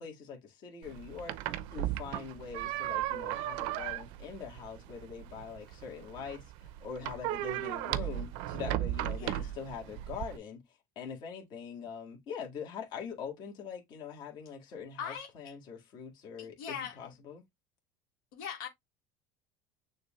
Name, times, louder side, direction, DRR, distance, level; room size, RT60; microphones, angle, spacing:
voice 1, 0.0-10.6 11.0-17.4, left 6 dB, 50° left, 1.7 m, -43 dB
sound 1, 0.8-10.4, right 14 dB, 70° right, 0.5 m, -36 dB
voice 2, 9.2-9.5 15.0-15.5 16.4-17.2 18.3-18.7, left 7 dB, 80° left, 1.6 m, -41 dB
6.5 x 2.6 x 3.0 m
supercardioid pair, 120°, 10 cm